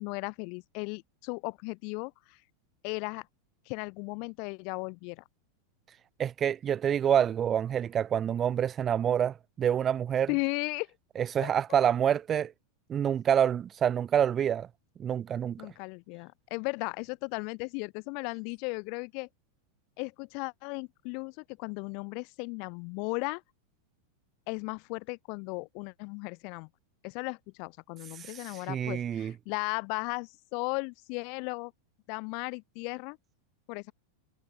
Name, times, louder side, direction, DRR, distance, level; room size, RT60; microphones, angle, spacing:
voice 1, 0.0-2.4 2.8-3.3 3.7-5.2 10.3-10.9 11.4-11.8 15.6-19.3 20.0-23.4 24.5-26.7 27.0-31.7 32.1-33.2 33.7-33.9, left 36 dB, 45° left, 4.7 m, -36 dB
voice 2, 6.2-10.3 11.2-12.5 12.9-14.7 15.0-15.6 28.2-29.3, right 9 dB, 25° right, 0.4 m, -27 dB
figure-of-eight pair, 90°, 0 cm